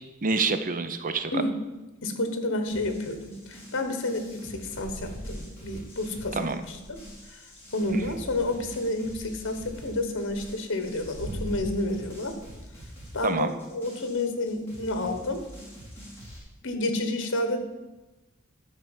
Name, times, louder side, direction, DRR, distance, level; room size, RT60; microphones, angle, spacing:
voice 1, 0.2-1.4 6.4-6.6 7.9-8.2 13.2-13.5, right 4 dB, 40° right, 10 dB, 0.6 m, -27 dB
voice 2, 2.0-6.6 6.9-7.0 7.3-7.4 7.7-12.3 13.1-15.4 16.6-17.6, left 2 dB, 60° left, 7 dB, 1.3 m, -30 dB
sound 1, 2.7-16.4, equal, 10° left, 3.9 m, -46 dB
sound 2, 4.7-7.3 7.7-8.6 9.0-13.1, equal, 65° right, 1.4 m, -42 dB
11.5 x 5.0 x 7.3 m, 1.1 s
head